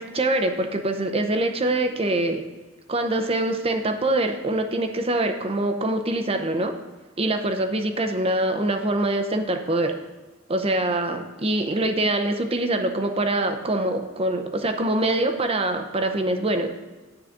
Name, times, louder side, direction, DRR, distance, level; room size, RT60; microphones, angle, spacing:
voice 1, 0.0-2.4 2.9-6.8 7.2-10.0 10.5-16.7, right 1 dB, 30° right, 6 dB, 0.7 m, -24 dB
9.7 x 3.9 x 7.2 m, 1.3 s
head